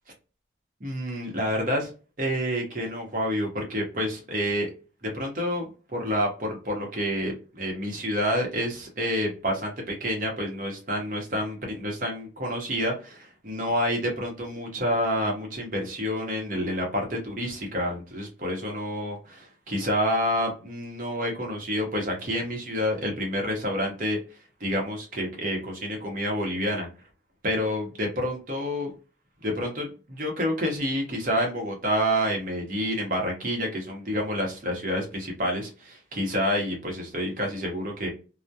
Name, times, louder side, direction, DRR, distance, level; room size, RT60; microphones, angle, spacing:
voice 1, 0.8-1.9 2.2-4.7 5.0-5.6 5.9-24.2 24.6-26.9 27.4-28.9 29.4-38.1, equal, 45° right, 1 dB, 0.8 m, -28 dB
2.2 x 2.0 x 2.6 m, 0.34 s
head